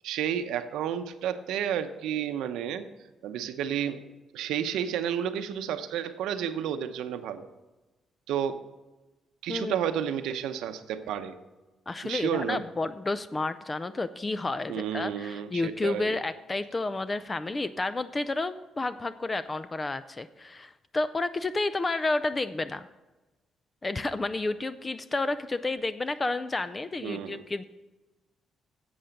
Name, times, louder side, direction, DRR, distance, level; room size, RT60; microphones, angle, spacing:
voice 1, 0.0-2.8 3.2-4.0 4.3-7.5 8.3-8.6 9.4-11.3 12.0-12.6 14.7-16.1 27.0-27.4, right 9 dB, 90° right, 9 dB, 0.7 m, -31 dB
voice 2, 11.9-22.9 23.8-27.6, left 2 dB, 25° left, 13 dB, 0.4 m, -31 dB
10.0 x 7.8 x 5.2 m, 1.1 s
cardioid pair, 90°, 0 cm